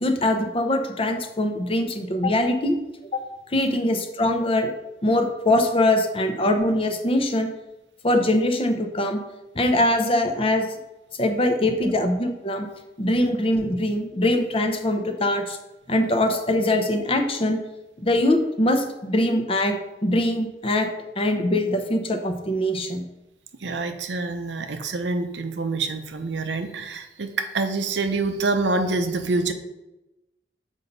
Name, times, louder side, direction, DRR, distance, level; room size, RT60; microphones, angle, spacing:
voice 1, 0.0-2.8 3.1-3.2 3.5-4.7 5.0-7.5 8.0-9.2 9.5-10.8 11.2-12.7 13.0-15.6 15.9-17.6 18.0-20.9 21.2-23.0, left 1 dB, 35° left, 6 dB, 0.8 m, -22 dB
voice 2, 23.6-29.5, right 3 dB, 85° right, 7 dB, 0.7 m, -26 dB
7.2 x 5.4 x 4.1 m, 0.96 s
head